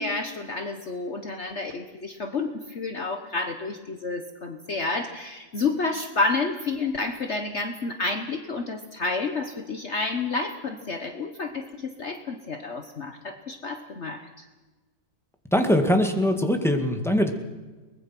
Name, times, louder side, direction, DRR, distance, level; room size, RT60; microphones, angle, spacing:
voice 1, 0.0-14.5, left 3 dB, 45° left, 6 dB, 1.4 m, -30 dB
voice 2, 15.5-17.3, left 1 dB, ahead, 5 dB, 1.9 m, -22 dB
23.0 x 20.0 x 6.0 m, 1.2 s
omnidirectional pair, 1.7 m